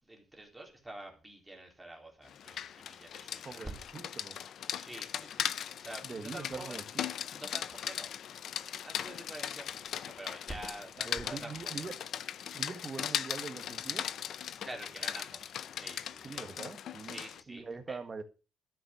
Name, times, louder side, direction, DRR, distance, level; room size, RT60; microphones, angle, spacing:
voice 1, 0.0-3.7 4.8-6.8 7.2-8.5 8.8-11.8 14.6-16.6 17.0-18.0, right 1 dB, 5° right, 3.5 m, -47 dB
Rain, 2.3-17.4, left 9 dB, 55° left, 0.6 m, -39 dB
voice 2, 3.4-4.4 6.0-7.0 11.0-11.9 12.5-14.1 16.2-18.2, right 4 dB, 25° right, 1.6 m, -43 dB
12.5 x 7.6 x 7.4 m
cardioid pair, 140°, 0 cm